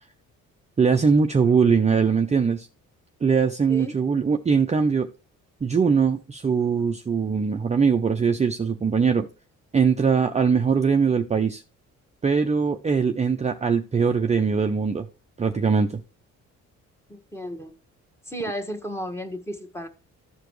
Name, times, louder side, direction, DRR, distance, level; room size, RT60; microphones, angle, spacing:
voice 1, 0.8-2.7 3.2-5.1 5.6-9.3 9.7-11.6 12.2-15.1 15.4-16.0, right 5 dB, 20° right, 0.6 m, -21 dB
voice 2, 17.1-17.7 18.3-19.9, equal, 10° left, 1.4 m, -33 dB
14.0 x 4.9 x 3.1 m
cardioid pair, 90°, 30 cm